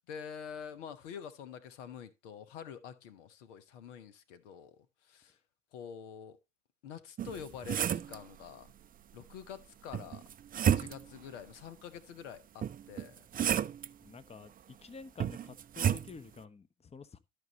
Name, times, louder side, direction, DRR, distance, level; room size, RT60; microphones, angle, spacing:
voice 1, 0.1-5.4 5.7-6.4 6.8-8.7 9.1-10.2 10.5-13.3, left 7 dB, 75° left, 1.1 m, -47 dB
sound 1, 7.2-8.2 9.9-11.2 12.6-13.9 15.2-16.1, right 9 dB, 25° right, 0.4 m, -31 dB
voice 2, 14.0-17.2, left 4 dB, 15° left, 0.9 m, -50 dB
12.5 x 5.2 x 4.0 m
hypercardioid pair, 70°, 37 cm